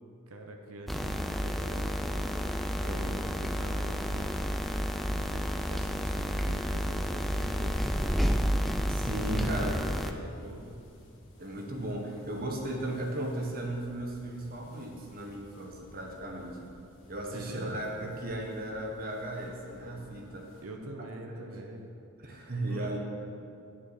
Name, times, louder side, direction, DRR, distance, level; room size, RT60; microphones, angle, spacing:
voice 1, 0.3-2.3 2.9-4.6 5.1-8.2 9.1-10.8 17.3-17.8 20.6-21.9 22.7-23.0, right 1 dB, 75° right, 2 dB, 0.9 m, -44 dB
sound 1, 0.9-10.1, equal, ahead, 0.3 m, -31 dB
sound 2, 1.0-20.6, equal, 60° left, 1.8 m, -54 dB
voice 2, 2.8-3.2 8.9-9.7 11.4-16.6 17.1-20.5 21.3-21.5 22.2-23.0, right 1 dB, 40° right, 0 dB, 1.2 m, -36 dB
7.5 x 7.2 x 7.1 m, 2.5 s
head